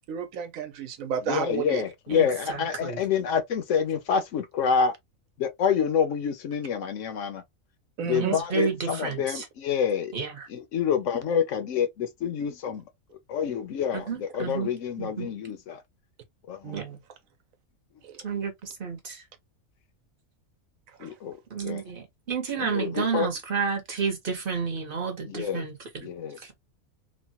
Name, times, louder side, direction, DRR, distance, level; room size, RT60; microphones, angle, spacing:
voice 1, 0.1-1.8 8.0-8.4 16.6-17.0 18.0-18.1, right 8 dB, 80° right, 1.1 m, -31 dB
voice 2, 1.2-4.9 5.4-7.4 8.0-10.1 10.5-12.8 13.3-15.8 16.5-16.8 21.0-21.4 21.6-21.8 22.6-23.3 25.2-25.7 26.0-26.4, left 7 dB, 70° left, 0.9 m, -27 dB
voice 3, 2.1-3.0 8.2-9.4 10.1-10.5 13.9-14.7 15.0-15.3 16.7-16.9 18.2-19.2 21.5-26.1 26.4-26.5, right 6 dB, 45° right, 0.9 m, -31 dB
3.1 x 2.1 x 2.7 m
omnidirectional pair, 1.4 m